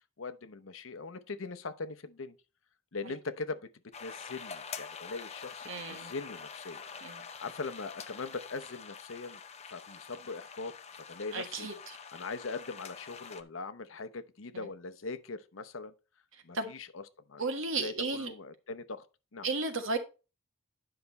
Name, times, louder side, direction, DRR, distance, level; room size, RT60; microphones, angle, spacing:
voice 1, 0.2-2.4 2.9-3.6 4.0-6.8 7.4-9.4 9.7-10.7 11.1-11.7 12.1-15.9 16.4-17.0 17.3-17.4 17.8-19.1 19.3-19.5, left 3 dB, 70° left, 0.8 m, -41 dB
sound 1, 3.9-13.4, left 6 dB, 30° left, 0.7 m, -46 dB
voice 2, 5.7-6.1 7.0-7.2 11.3-11.7 16.5-16.7 17.4-18.3 19.4-20.0, right 3 dB, 65° right, 1.6 m, -33 dB
10.0 x 5.7 x 4.1 m
head